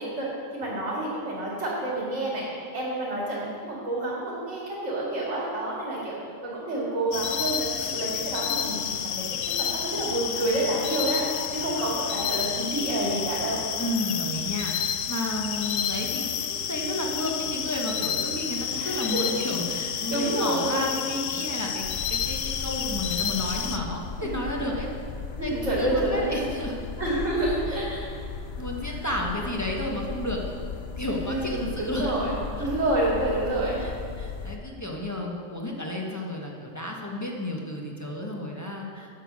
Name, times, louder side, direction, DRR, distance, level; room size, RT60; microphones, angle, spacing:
voice 1, 0.0-2.4 2.7-6.1 6.4-13.6 18.7-19.3 20.1-20.8 24.2-24.3 24.6-24.7 25.4-26.4 27.0-28.1 31.2-33.8, right 1 dB, 70° right, -6 dB, 2.7 m, -29 dB
sound 1, 7.1-23.8, left 8 dB, 85° left, 1.0 m, -30 dB
voice 2, 13.8-24.9 25.4-26.9 27.7-27.9 28.6-30.5 31.0-32.1 32.6-32.7 33.8-39.1, left 1 dB, 15° left, -1 dB, 1.2 m, -32 dB
sound 2, 21.8-34.6, left 4 dB, 55° left, 0.9 m, -36 dB
9.4 x 7.7 x 6.2 m, 2.3 s
omnidirectional pair, 1.3 m